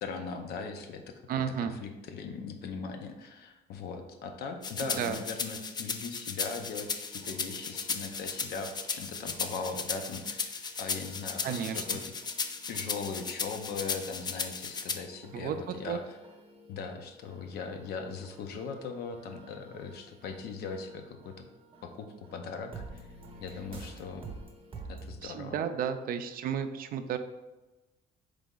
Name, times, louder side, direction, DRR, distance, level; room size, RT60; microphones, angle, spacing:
voice 1, 0.0-1.1 1.6-12.1 12.7-16.2 16.7-21.4 21.8-23.1 23.4-24.3 24.9-25.6, left 5 dB, 70° left, 5 dB, 0.6 m, -39 dB
voice 2, 1.3-1.7 4.8-5.2 11.4-11.8 15.3-16.0 25.2-27.2, right 8 dB, 60° right, 9 dB, 0.4 m, -33 dB
sound 1, 4.6-15.0, left 5 dB, 25° left, 0.4 m, -35 dB
sound 2, 6.8-25.2, right 3 dB, 30° right, 0.8 m, -51 dB
4.0 x 3.3 x 3.7 m, 1.1 s
cardioid pair, 110°, 17 cm